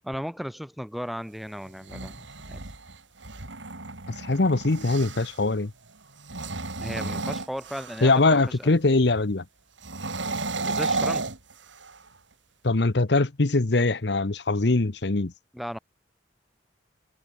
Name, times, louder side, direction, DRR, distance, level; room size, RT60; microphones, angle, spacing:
voice 1, 0.0-2.6 6.8-8.7 10.6-11.3 15.5-15.8, equal, ahead, 3.9 m, -36 dB
sound 1, 1.7-5.4 6.2-8.2 9.8-12.1, right 3 dB, 85° right, 4.0 m, -32 dB
voice 2, 4.2-5.7 8.0-9.4 12.6-15.3, left 3 dB, 65° left, 1.0 m, -22 dB
head